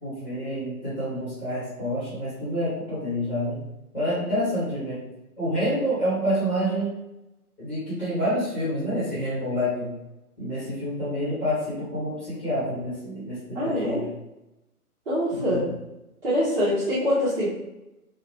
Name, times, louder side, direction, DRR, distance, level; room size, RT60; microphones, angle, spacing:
voice 1, 0.0-3.6 3.9-5.0 5.4-6.9 7.6-10.0 10.4-14.0 15.3-15.7, equal, 5° left, -14 dB, 1.0 m, -28 dB
voice 2, 13.5-14.0 15.1-15.7 16.2-17.5, equal, 40° right, -11 dB, 1.0 m, -24 dB
3.0 x 2.1 x 2.9 m, 0.95 s
figure-of-eight pair, 135°, 45 cm